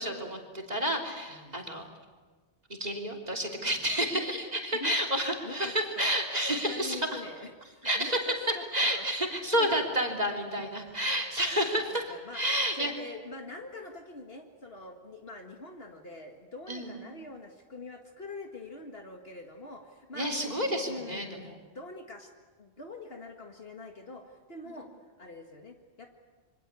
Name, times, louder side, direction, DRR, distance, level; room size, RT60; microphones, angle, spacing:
voice 1, 0.0-1.8 2.8-7.2 7.8-8.3 8.7-12.9 16.7-17.0 20.1-21.3, equal, 35° right, 4 dB, 3.3 m, -30 dB
voice 2, 1.3-1.6 4.1-4.4 4.8-4.9 5.4-6.2 6.5-9.1 9.5-9.8 10.3-10.7 12.1-12.4 12.8-20.3 20.8-22.3 22.6-24.9 25.2-26.1, left 2 dB, 55° left, 3 dB, 2.2 m, -44 dB
27.0 x 24.5 x 8.4 m, 1.4 s
omnidirectional pair, 1.2 m